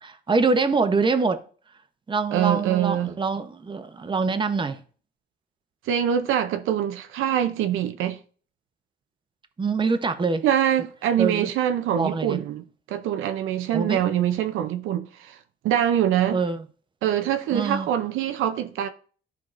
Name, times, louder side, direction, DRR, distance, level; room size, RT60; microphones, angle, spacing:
voice 1, 0.0-1.4 2.1-4.8 9.6-10.4 11.2-11.5 11.9-12.4 13.7-14.0 16.3-16.6 17.5-17.9, right 4 dB, 25° right, 0.8 m, -24 dB
voice 2, 2.3-3.1 5.9-8.2 10.4-15.4 15.6-16.4 17.0-18.9, right 10 dB, 90° right, 0.6 m, -24 dB
13.0 x 4.6 x 2.5 m
cardioid pair, 90°, 20 cm